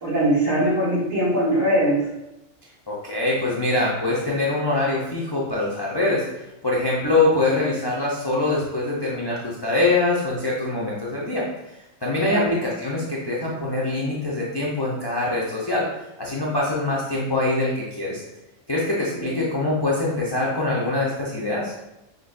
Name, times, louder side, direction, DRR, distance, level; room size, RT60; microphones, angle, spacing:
voice 1, 0.0-2.1 12.3-12.6 19.2-19.3, right 1 dB, 75° right, -8 dB, 2.0 m, -21 dB
voice 2, 2.9-6.2 6.6-11.4 12.0-15.9 16.2-18.2 18.7-21.7, left 2 dB, 40° left, -5 dB, 0.3 m, -24 dB
5.2 x 2.2 x 2.5 m, 0.88 s
omnidirectional pair, 1.3 m